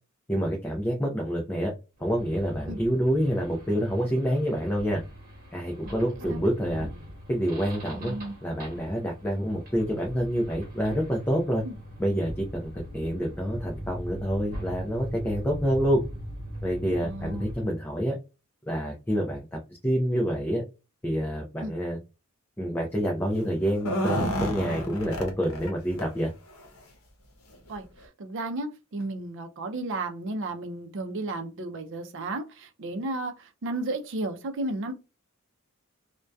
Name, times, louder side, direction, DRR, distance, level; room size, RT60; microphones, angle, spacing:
voice 1, 0.3-1.7 2.0-5.0 5.5-6.9 7.3-8.1 8.4-11.6 12.0-16.0 16.6-18.1 18.7-20.6 21.0-22.0 22.6-26.3, equal, 10° left, 0.4 m, -27 dB
sound 1, 2.0-17.6, equal, 45° right, 1.0 m, -41 dB
voice 2, 7.9-8.3 11.6-11.7 17.0-17.5 21.6-21.7 27.7-27.9 28.2-34.9, right 2 dB, 60° right, 0.5 m, -33 dB
sound 2, 23.7-25.7 26.0-26.1 26.5-26.7 27.5-27.6 28.0-28.1, equal, 85° left, 0.7 m, -30 dB
2.6 x 2.1 x 2.2 m
head